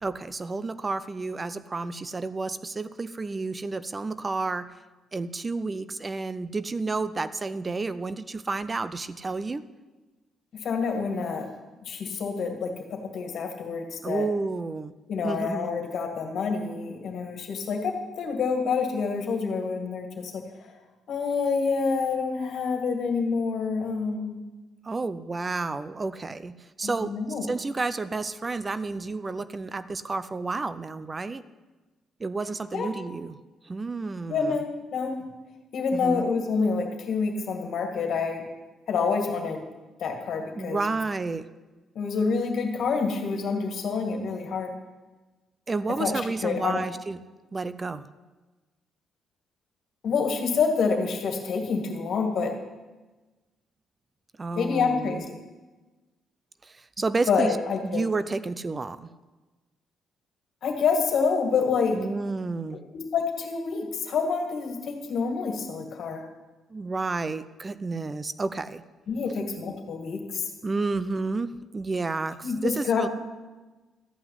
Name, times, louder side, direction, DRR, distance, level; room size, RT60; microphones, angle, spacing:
voice 1, 0.0-4.7 5.1-9.7 14.0-14.9 15.2-15.7 24.8-31.5 32.2-33.4 33.6-34.6 35.9-36.3 40.6-41.5 45.7-47.2 47.5-48.1 54.4-55.2 56.6-57.6 57.8-59.1 61.9-62.8 66.7-68.8 70.6-73.1, right 3 dB, 25° right, 15 dB, 0.5 m, -31 dB
voice 2, 10.5-11.5 11.9-14.2 15.1-20.7 21.1-24.4 26.8-27.5 32.7-32.9 34.3-34.7 34.9-35.1 35.7-38.4 38.9-39.6 40.0-40.8 42.0-44.7 46.0-46.8 50.0-52.5 54.6-55.4 57.3-58.0 60.6-62.0 62.7-66.2 69.1-70.4 72.4-73.1, left 5 dB, 65° left, 4 dB, 2.1 m, -27 dB
13.0 x 5.8 x 9.5 m, 1.2 s
cardioid pair, 90°, 0 cm